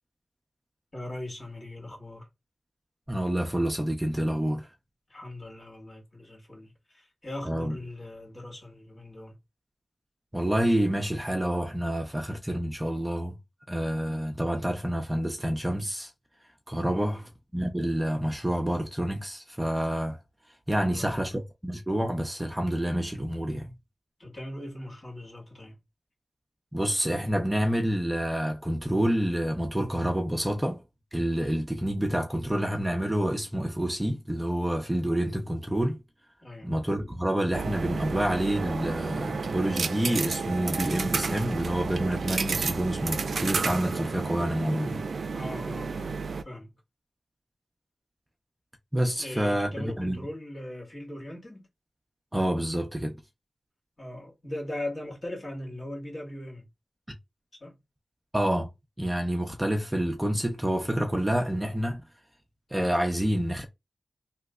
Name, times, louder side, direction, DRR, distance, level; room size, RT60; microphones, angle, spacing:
voice 1, 0.9-2.3 5.1-9.4 16.9-17.3 20.7-21.3 24.2-25.8 36.4-36.7 45.3-46.1 46.4-46.7 49.2-51.7 54.0-56.7 57.6-57.8, left 1 dB, 50° left, 1.7 m, -39 dB
voice 2, 3.1-4.7 7.4-7.8 10.3-13.4 13.7-16.1 16.7-17.2 17.5-20.2 20.7-23.7 26.7-30.8 31.1-36.0 36.6-45.0 48.9-50.2 52.3-53.2 58.3-58.7 59.0-62.0 62.7-63.7, right 1 dB, 15° right, 0.6 m, -28 dB
sound 1, 37.5-46.4, right 4 dB, 80° right, 0.3 m, -31 dB
3.0 x 2.1 x 3.5 m
wide cardioid pair, 70°, 0 cm